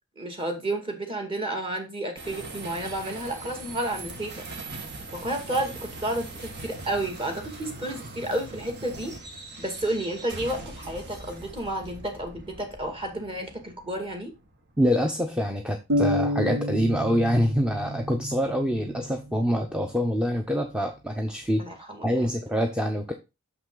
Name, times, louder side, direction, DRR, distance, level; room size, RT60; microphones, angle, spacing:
voice 1, 0.2-4.4 5.1-9.1 9.6-14.3 21.6-22.2, right 1 dB, 25° right, 4 dB, 2.1 m, -31 dB
sound 1, 2.2-15.5, right 2 dB, 55° right, 1.6 m, -41 dB
voice 2, 14.8-21.6 22.0-23.1, equal, 5° right, 3 dB, 0.7 m, -25 dB
sound 2, 15.9-19.7, left 1 dB, 75° right, 1.3 m, -30 dB
6.7 x 5.7 x 3.8 m, 0.25 s
head